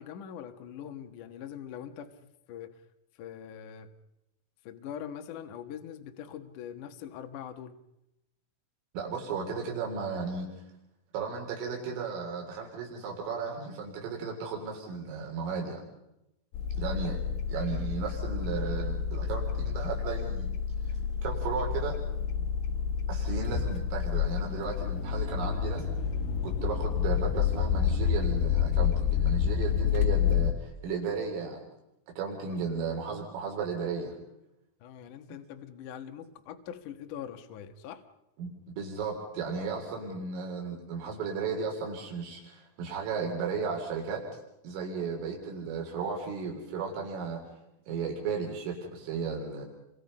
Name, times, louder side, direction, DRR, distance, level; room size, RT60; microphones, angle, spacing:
voice 1, 0.0-2.8 3.1-3.9 4.6-7.8 32.5-32.6 34.8-38.0, left 9 dB, 60° left, 6 dB, 2.2 m, -43 dB
voice 2, 8.9-10.6 11.1-15.8 16.8-17.2 17.5-20.5 20.9-22.0 23.1-25.9 26.4-31.6 32.2-34.1 38.4-44.2 44.6-47.4 47.9-49.7, right 5 dB, 90° right, 0 dB, 6.3 m, -35 dB
sound 1, 16.5-30.5, left 8 dB, 85° left, 4.3 m, -29 dB
29.5 x 25.0 x 5.5 m, 0.88 s
omnidirectional pair, 5.7 m